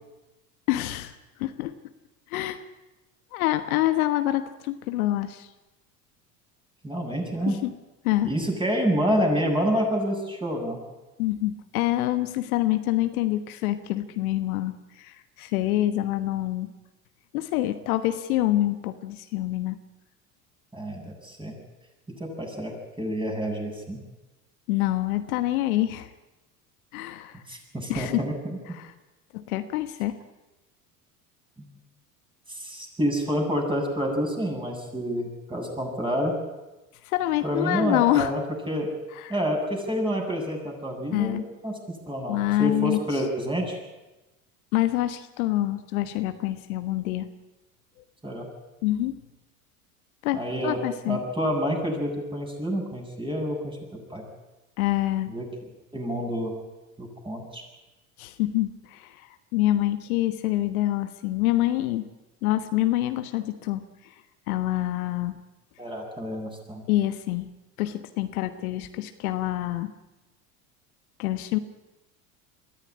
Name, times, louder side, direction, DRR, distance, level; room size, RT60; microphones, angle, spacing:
voice 1, 0.7-1.1 1.4-1.7 2.3-2.6 3.3-5.5 7.5-7.7 8.0-8.3 11.2-16.7 17.3-19.8 24.7-26.1 26.9-27.4 27.9-28.2 28.7-28.9 29.3-30.2 37.0-38.3 41.1-41.4 42.3-43.0 44.7-47.3 48.8-49.2 50.2-51.2 54.8-55.3 58.2-59.3 59.5-62.0 62.4-63.8 64.5-65.4 66.9-67.5 67.8-69.9 71.2-71.6, left 15 dB, 70° left, 10 dB, 1.3 m, -26 dB
voice 2, 6.8-7.5 8.2-10.8 20.7-21.6 22.2-22.7 23.0-24.0 27.5-28.6 31.6-31.7 32.5-36.3 37.4-38.4 38.7-38.9 39.3-41.7 42.1-43.8 48.2-48.5 50.3-50.8 51.1-53.8 54.1-54.2 55.3-55.4 55.9-56.5 57.0-57.6 65.8-66.8, equal, 10° right, 0 dB, 8.0 m, -28 dB
22.0 x 14.5 x 9.8 m, 1.1 s
hypercardioid pair, 80°, 44 cm